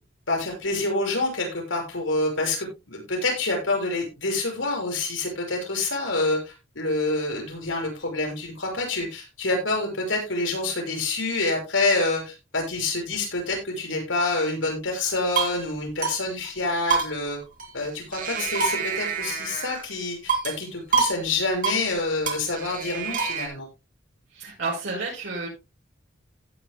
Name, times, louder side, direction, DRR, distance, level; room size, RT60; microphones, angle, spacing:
voice 1, 0.3-17.4 17.7-23.7, left 2 dB, 90° left, 2 dB, 5.9 m, -27 dB
sound 1, 15.0-15.6 16.0-16.2 16.4-16.5 16.9-17.9 18.1-19.9 20.3-20.6 20.9-21.2 21.4-21.8 22.3-23.5, right 5 dB, 45° right, 3.4 m, -27 dB
voice 2, 24.3-25.5, right 3 dB, 70° right, -6 dB, 5.7 m, -31 dB
16.5 x 10.0 x 2.2 m, 0.26 s
head